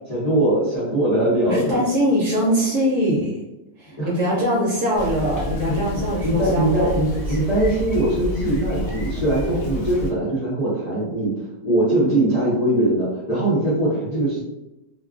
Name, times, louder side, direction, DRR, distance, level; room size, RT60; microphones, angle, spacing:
voice 1, 0.1-1.8 4.0-4.1 5.7-14.4, right 1 dB, 35° left, -9 dB, 0.6 m, -21 dB
voice 2, 1.4-3.4 3.8-7.5, equal, 65° right, -4 dB, 0.9 m, -22 dB
Bicycle, 4.9-10.1, left 1 dB, 65° left, 1.0 m, -29 dB
3.0 x 2.2 x 2.4 m, 0.93 s
omnidirectional pair, 1.7 m